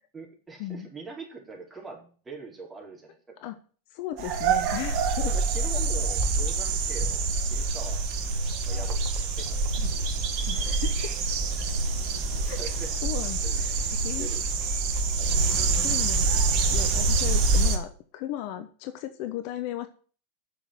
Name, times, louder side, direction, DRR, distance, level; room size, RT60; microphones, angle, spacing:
voice 1, 0.1-3.4 5.3-8.0 8.6-9.6 12.6-12.9 13.4-13.6 14.0-14.5 15.2-15.4, right 4 dB, 15° right, 0 dB, 4.5 m, -43 dB
voice 2, 3.9-5.3 9.8-10.0 10.5-11.2 12.4-12.6 13.0-14.3 15.5-16.2 16.7-19.9, left 12 dB, 45° left, 10 dB, 1.0 m, -36 dB
sound 1, 4.2-17.8, right 3 dB, 40° right, 2.0 m, -26 dB
9.3 x 7.1 x 7.7 m, 0.41 s
figure-of-eight pair, 90°, 0 cm